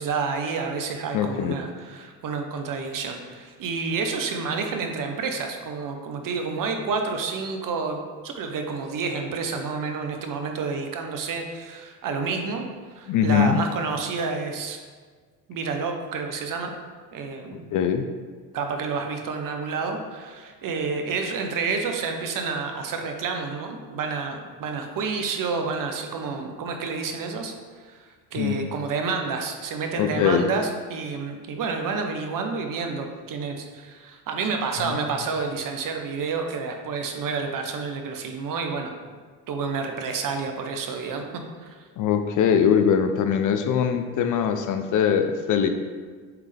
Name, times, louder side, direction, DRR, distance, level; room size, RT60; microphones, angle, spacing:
voice 1, 0.0-8.0 8.2-12.6 12.9-14.8 15.5-16.7 17.1-17.7 18.5-38.9 39.5-41.2 41.6-41.9, right 4 dB, 45° right, 4 dB, 1.0 m, -29 dB
voice 2, 1.1-1.6 13.1-13.6 17.7-18.1 28.4-28.7 30.0-30.4 34.8-35.0 42.0-45.7, left 8 dB, 45° left, 7 dB, 0.6 m, -22 dB
8.0 x 3.6 x 3.4 m, 1.5 s
hypercardioid pair, 70°, 45 cm